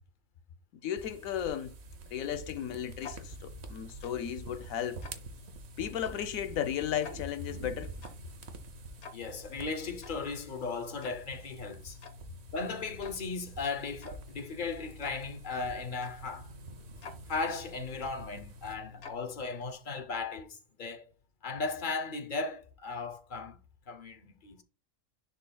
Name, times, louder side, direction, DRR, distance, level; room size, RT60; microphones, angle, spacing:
voice 1, 0.8-1.7 2.1-5.0 5.8-7.9, left 9 dB, 90° left, 1.1 m, -35 dB
sound 1, 1.0-18.8, right 3 dB, 60° right, 1.0 m, -48 dB
Tick-tock, 1.7-20.0, left 5 dB, 60° left, 1.2 m, -51 dB
voice 2, 9.1-12.0 12.5-16.5 17.3-21.1 21.4-23.6 23.9-24.6, left 4 dB, 45° left, 0.8 m, -36 dB
10.0 x 4.0 x 2.3 m
omnidirectional pair, 1.4 m